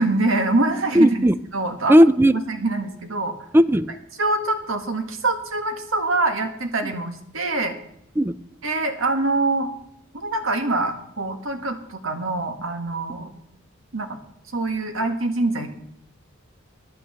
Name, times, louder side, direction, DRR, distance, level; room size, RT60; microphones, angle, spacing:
voice 1, 0.0-1.2 1.5-2.0 2.3-3.3 4.2-7.7 8.6-9.7 10.1-13.3 13.9-14.2 14.5-15.7, right 2 dB, 70° right, 7 dB, 1.6 m, -24 dB
voice 2, 1.0-1.3 1.9-2.3 3.5-3.9 8.2-8.4, equal, 10° right, 15 dB, 0.3 m, -15 dB
10.5 x 9.4 x 6.8 m, 0.77 s
head